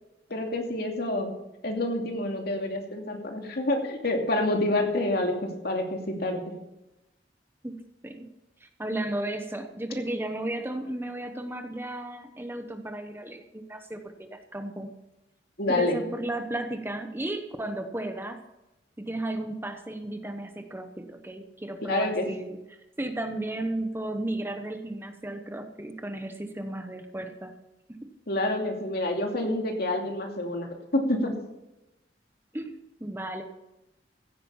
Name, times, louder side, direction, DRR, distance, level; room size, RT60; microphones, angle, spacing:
voice 1, 0.3-1.3 1.6-6.4 15.6-16.0 21.9-22.3 28.3-31.4, left 1 dB, 60° left, 2 dB, 2.6 m, -28 dB
voice 2, 8.6-14.9 15.7-18.4 19.0-22.6 23.0-27.5 32.5-33.4, right 1 dB, 15° right, 6 dB, 1.0 m, -34 dB
15.5 x 9.2 x 5.6 m, 0.95 s
head